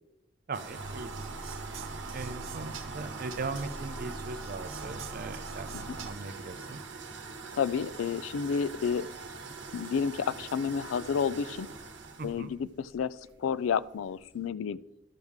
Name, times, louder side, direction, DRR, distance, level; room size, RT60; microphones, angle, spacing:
voice 1, 0.5-1.3 2.1-6.8 12.2-12.5, right 3 dB, 45° right, 10 dB, 0.4 m, -39 dB
sound 1, 0.5-14.5, right 4 dB, 60° right, 1.0 m, -44 dB
sound 2, 0.8-6.1, right 3 dB, 80° right, 0.8 m, -41 dB
voice 2, 7.5-9.1 9.7-11.7 12.2-14.8, left 6 dB, 80° left, 17 dB, 0.3 m, -30 dB
12.0 x 6.4 x 3.5 m, 0.92 s
head